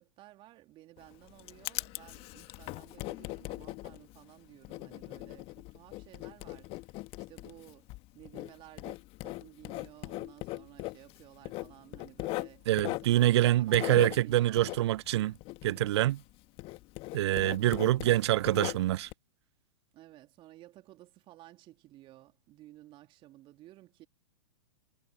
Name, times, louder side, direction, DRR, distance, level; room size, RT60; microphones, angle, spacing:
voice 1, 0.0-14.7 19.9-24.1, right 16 dB, 30° right, 3.3 m, -55 dB
Writing, 1.0-16.3 16.6-19.1, left 21 dB, 35° left, 1.7 m, -40 dB
voice 2, 12.7-15.3 15.6-16.2 17.1-19.1, right 14 dB, 55° right, 0.7 m, -25 dB
figure-of-eight pair, 110°, 17 cm